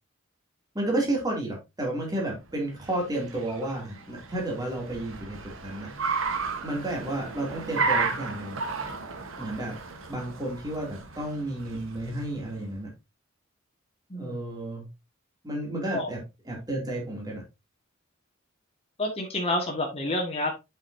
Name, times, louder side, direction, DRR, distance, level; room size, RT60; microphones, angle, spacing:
voice 1, 0.7-5.9 6.6-8.6 9.4-9.8 10.1-12.9 14.1-14.9 15.4-17.4, right 1 dB, 20° right, 2.7 m, -32 dB
Car, 2.4-12.7, right 4 dB, 80° right, 1.3 m, -34 dB
voice 2, 14.1-14.4 15.9-16.1 19.0-20.5, left 1 dB, 30° left, 1.7 m, -29 dB
7.5 x 5.7 x 2.7 m
head